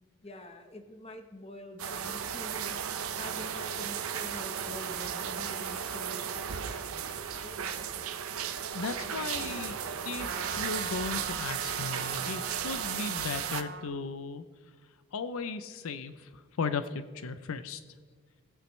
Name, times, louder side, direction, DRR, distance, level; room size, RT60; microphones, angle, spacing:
voice 1, 0.2-2.8 3.1-8.2 8.9-10.1, left 1 dB, 25° left, 6 dB, 0.9 m, -47 dB
sound 1, 1.8-13.6, right 8 dB, 80° right, 0.6 m, -35 dB
voice 2, 8.7-9.8 10.0-10.3 10.5-14.4 15.1-17.8, left 5 dB, 75° left, 11 dB, 0.5 m, -36 dB
Trumpet, 10.2-13.9, right 4 dB, 50° right, 1.0 m, -41 dB
19.0 x 8.4 x 3.1 m, 1.5 s
head